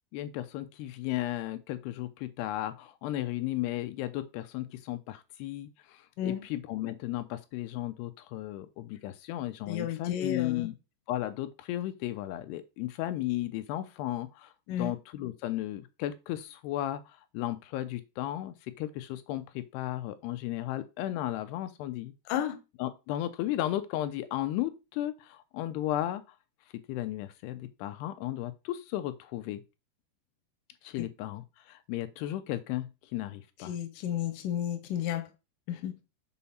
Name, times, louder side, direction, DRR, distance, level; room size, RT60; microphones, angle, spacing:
voice 1, 0.1-10.7 11.1-14.5 14.8-22.1 22.8-26.2 26.9-29.6 30.8-33.7, left 14 dB, 85° left, 2.6 m, -35 dB
voice 2, 9.7-10.7 14.7-14.9 22.3-22.6 31.0-31.1 33.6-35.3 35.7-35.9, left 10 dB, 70° left, 2.2 m, -32 dB
7.1 x 4.2 x 5.5 m
omnidirectional pair, 4.8 m